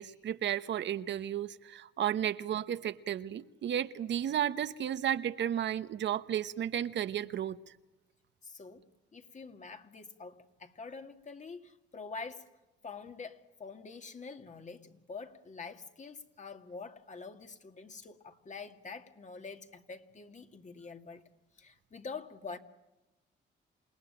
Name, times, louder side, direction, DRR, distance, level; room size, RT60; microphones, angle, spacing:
voice 1, 0.0-7.6, right 10 dB, 65° right, 1.1 m, -33 dB
voice 2, 8.4-8.9 9.1-12.5 12.8-21.2 21.6-22.6, left 4 dB, 40° left, 2.4 m, -46 dB
28.5 x 19.0 x 8.9 m
cardioid pair, 90°, 20 cm